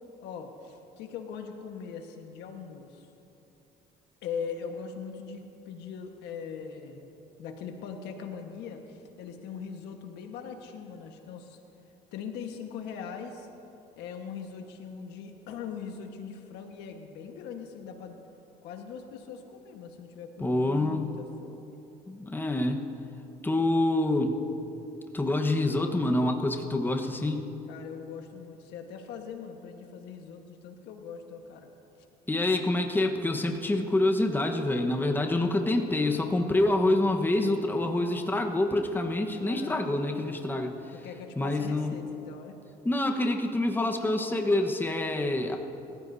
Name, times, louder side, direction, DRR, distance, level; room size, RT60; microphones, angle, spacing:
voice 1, 0.2-3.1 4.2-7.1 7.4-11.6 12.1-13.5 14.0-18.2 18.6-21.8 27.7-31.7 36.4-36.9 39.4-40.0 40.9-42.6, left 6 dB, 85° left, 4 dB, 1.4 m, -41 dB
voice 2, 20.4-21.1 22.1-22.8 23.4-24.3 25.1-27.5 32.3-40.7 41.3-41.9 42.8-45.6, left 2 dB, 10° left, 3 dB, 1.2 m, -26 dB
26.5 x 15.0 x 2.7 m, 2.9 s
cardioid pair, 110°, 17 cm